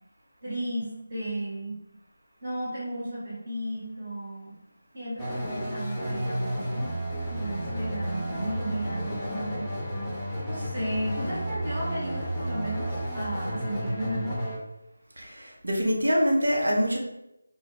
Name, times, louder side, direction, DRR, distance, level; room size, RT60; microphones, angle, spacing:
voice 1, 0.4-1.7 2.4-4.5 4.9-6.8 7.3-9.6 10.4-14.5, equal, 45° right, -8 dB, 1.4 m, -34 dB
sound 1, 5.2-14.6, right 1 dB, 10° left, 0.6 m, -32 dB
voice 2, 15.2-17.0, equal, 75° right, -1 dB, 0.9 m, -25 dB
2.5 x 2.3 x 3.9 m, 0.86 s
figure-of-eight pair, 165°, 0 cm